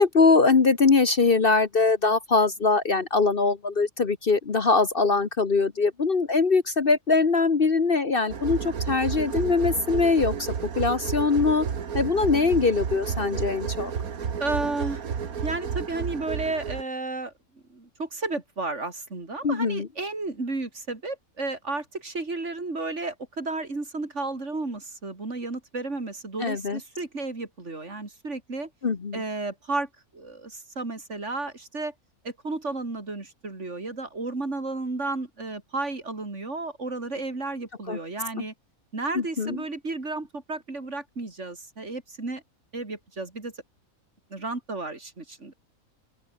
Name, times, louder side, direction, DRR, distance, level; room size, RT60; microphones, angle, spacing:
voice 1, 0.0-10.3 10.8-11.6 11.9-13.9 19.4-19.9 26.4-26.8 28.8-29.2 37.9-38.0 38.4-38.5 39.1-39.6, left 4 dB, 40° left, 1.4 m, -22 dB
sound 1, 8.3-16.8, right 7 dB, 85° right, 2.0 m, -31 dB
voice 2, 14.4-15.0 15.4-17.3 17.7-28.7 29.1-31.9 32.2-38.5 38.9-42.4 42.7-43.5 44.3-45.5, right 3 dB, 55° right, 3.9 m, -33 dB
open air
omnidirectional pair, 1.5 m